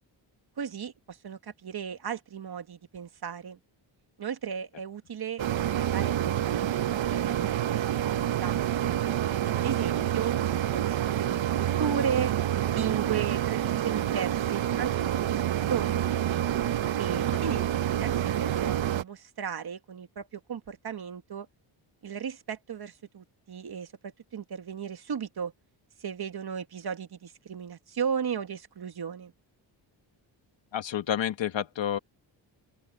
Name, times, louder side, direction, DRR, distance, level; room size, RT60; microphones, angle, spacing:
voice 1, 0.6-3.6 4.2-8.9 9.4-12.3 12.7-15.4 15.7-16.0 17.0-21.5 22.0-25.5 26.0-29.3, right 7 dB, 55° right, 1.8 m, -35 dB
sound 1, 5.4-19.0, right 11 dB, 75° right, 1.0 m, -28 dB
voice 2, 17.1-17.6 30.7-32.0, left 10 dB, 70° left, 1.6 m, -31 dB
open air
wide cardioid pair, 115°, 46 cm